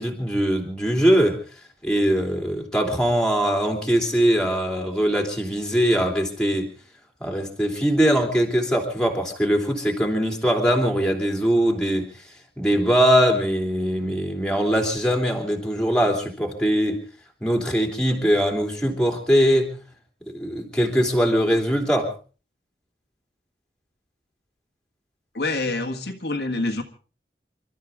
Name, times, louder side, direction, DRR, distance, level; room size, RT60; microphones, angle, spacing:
voice 1, 0.0-1.4 1.8-6.7 7.2-12.1 12.6-17.0 17.4-19.7 20.3-22.1, equal, 5° left, 2 dB, 3.0 m, -21 dB
voice 2, 25.3-26.8, left 2 dB, 70° left, 4 dB, 1.7 m, -26 dB
28.5 x 13.0 x 3.6 m, 0.36 s
head